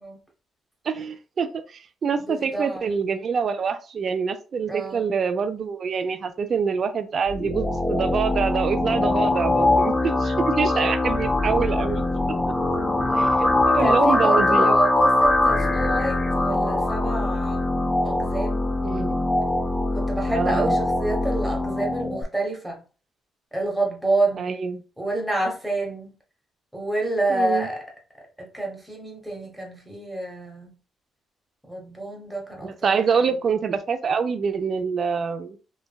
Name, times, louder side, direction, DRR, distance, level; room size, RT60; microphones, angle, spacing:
voice 1, 0.9-12.0 13.2-14.8 18.8-19.2 20.3-20.8 24.4-24.8 27.3-27.7 32.6-35.6, right 6 dB, 50° right, 0.4 m, -26 dB
voice 2, 2.3-3.0 4.7-5.1 11.0-11.2 13.8-17.6 18.0-18.6 19.9-22.8 23.5-24.5 25.0-26.1 26.7-27.8 28.4-30.7 31.7-32.9, right 2 dB, 5° right, 1.0 m, -28 dB
sound 1, 7.3-22.2, left 2 dB, 15° left, 0.4 m, -22 dB
3.3 x 2.1 x 2.2 m
cardioid pair, 90°, 0 cm